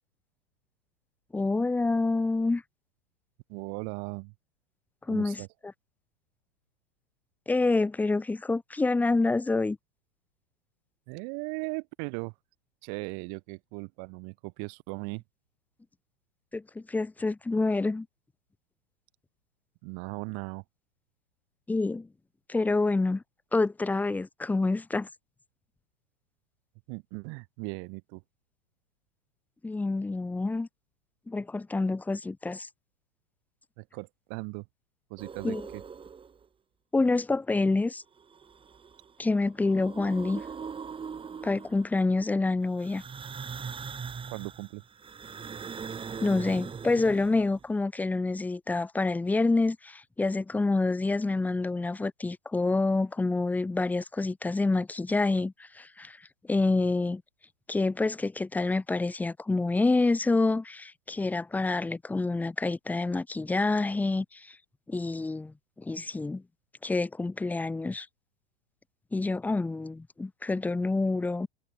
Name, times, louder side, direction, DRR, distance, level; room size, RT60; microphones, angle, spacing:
voice 1, 1.3-2.6 5.1-5.4 7.5-9.8 16.5-18.1 21.7-22.1 22.5-23.2 23.5-25.1 29.6-30.7 31.3-32.7 35.4-35.6 36.9-38.0 39.2-40.4 41.4-43.0 46.2-56.2 56.5-57.2 57.7-64.6 64.9-66.4 66.8-68.1 69.1-71.5, left 3 dB, 5° left, 0.7 m, -27 dB
voice 2, 3.5-4.3 5.1-5.5 11.1-12.3 12.8-15.2 19.8-20.6 26.9-28.2 33.8-34.7 35.1-35.8 44.3-44.8, right 40 dB or more, 45° right, 1.8 m, -38 dB
sound 1, 35.2-36.4 38.2-39.1 39.4-42.0 42.8-47.6, right 6 dB, 15° right, 3.2 m, -41 dB
figure-of-eight pair, 90°, 30 cm